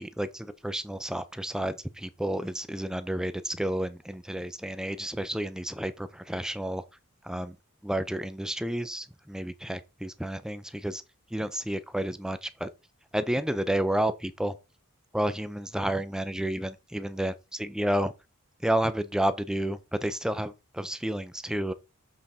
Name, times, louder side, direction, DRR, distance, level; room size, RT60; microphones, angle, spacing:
voice 1, 0.0-6.8 7.2-7.6 7.8-11.0 11.3-12.7 13.1-14.5 15.1-18.1 18.6-21.7, right 1 dB, 5° right, 0.5 m, -31 dB
7.4 x 4.2 x 3.6 m
head